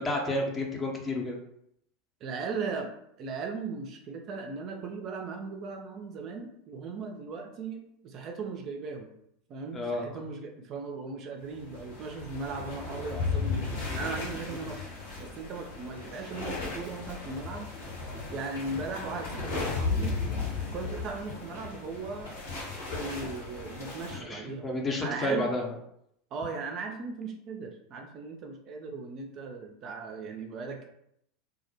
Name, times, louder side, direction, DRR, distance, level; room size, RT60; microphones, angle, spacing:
voice 1, 0.0-1.4 9.7-10.2 24.1-25.7, left 1 dB, 20° left, 1 dB, 0.6 m, -31 dB
voice 2, 2.2-9.1 9.5-14.9 15.2-17.9 18.3-20.2 20.6-22.3 22.9-24.7 25.0-25.5 26.3-30.9, right 4 dB, 40° right, 3 dB, 0.3 m, -38 dB
sound 1, 11.6-24.2, left 4 dB, 70° left, 1.0 m, -35 dB
2.2 x 2.0 x 2.8 m, 0.75 s
figure-of-eight pair, 80°, 0 cm